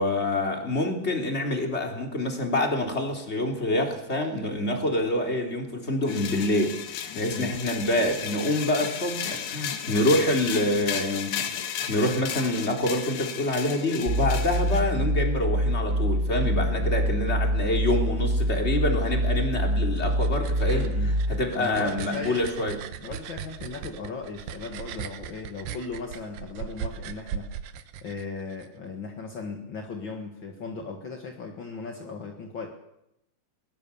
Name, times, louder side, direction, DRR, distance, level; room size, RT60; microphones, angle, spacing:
voice 1, 0.0-6.7 7.1-11.3 11.9-20.9 21.3-22.7, left 1 dB, 15° left, 2 dB, 3.1 m, -26 dB
sound 1, 6.1-14.8, left 8 dB, 75° left, 3.9 m, -34 dB
sound 2, 14.1-21.4, equal, 25° right, 2.1 m, -25 dB
voice 2, 16.4-16.9 20.7-22.4 23.0-27.5 28.0-32.7, left 4 dB, 50° left, 2 dB, 1.5 m, -37 dB
sound 3, 19.7-28.7, right 8 dB, 70° right, 2.4 m, -39 dB
22.5 x 19.0 x 7.1 m, 0.85 s
omnidirectional pair, 4.9 m